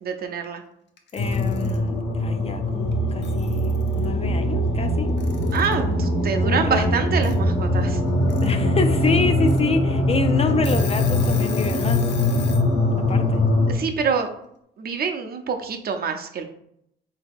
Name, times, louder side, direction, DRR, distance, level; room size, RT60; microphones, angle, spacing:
voice 1, 0.0-0.6 5.5-8.0 13.7-14.3 14.8-16.4, right 6 dB, 50° right, 0.6 m, -26 dB
Alarm / Clock, 1.0-1.8 2.9-3.0 3.2-4.1 5.2-5.8 7.2-7.3 8.1-8.5 8.9-9.0 9.5-9.6 10.1-10.2 10.5-12.7, left 7 dB, 60° left, 0.7 m, -38 dB
voice 2, 1.1-5.1 5.8-6.1 6.4-6.9 8.4-12.1 13.0-13.5, left 4 dB, 30° left, 0.3 m, -27 dB
sound 1, 1.2-13.7, left 1 dB, 85° left, 1.1 m, -22 dB
3.8 x 2.8 x 3.5 m
cardioid pair, 90°, 20 cm